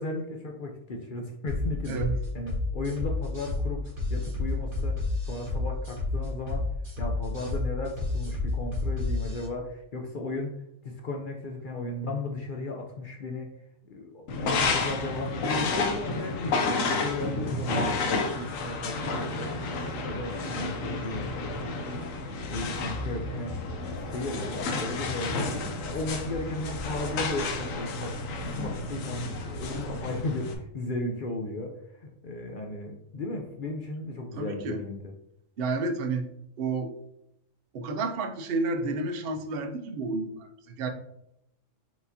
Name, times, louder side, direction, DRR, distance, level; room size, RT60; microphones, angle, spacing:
voice 1, 0.0-5.0 5.2-6.7 7.0-10.6 10.8-13.5 13.8-22.1 22.5-23.6 23.9-25.5 25.8-28.2 28.6-35.1, left 2 dB, 55° left, 1 dB, 0.6 m, -35 dB
sound 1, 1.5-9.5, left 3 dB, 30° right, 1.6 m, -30 dB
sound 2, 14.3-30.5, left 3 dB, 80° left, 1.1 m, -31 dB
voice 2, 34.4-34.8 35.6-36.3 36.6-36.9 37.7-40.9, right 3 dB, 55° right, 5 dB, 0.7 m, -30 dB
4.6 x 3.9 x 2.7 m, 0.79 s
omnidirectional pair, 1.4 m